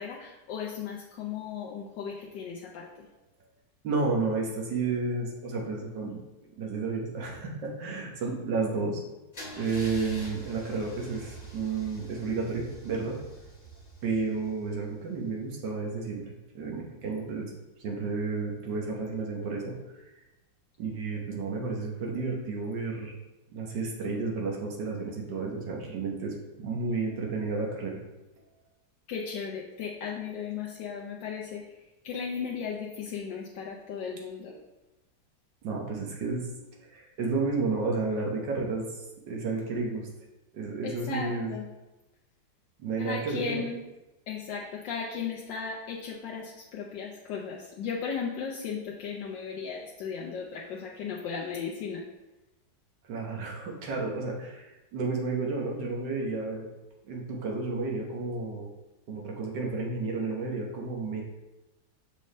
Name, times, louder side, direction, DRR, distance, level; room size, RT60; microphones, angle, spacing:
voice 1, 0.0-3.1 29.1-34.5 40.8-41.7 43.0-43.8 44.3-52.0, left 6 dB, 85° left, -3 dB, 1.4 m, -36 dB
voice 2, 3.8-6.2 6.6-9.0 9.5-13.2 14.0-17.5 17.8-20.1 20.8-23.1 23.5-28.0 35.6-36.5 36.8-40.1 40.5-41.5 42.8-43.7 53.1-56.7 57.1-58.7 59.1-61.2, right 4 dB, 80° right, 0 dB, 1.7 m, -32 dB
Car / Engine starting / Idling, 9.3-15.2, right 2 dB, 25° left, 1.2 m, -45 dB
6.6 x 5.3 x 3.2 m, 1.0 s
omnidirectional pair, 1.9 m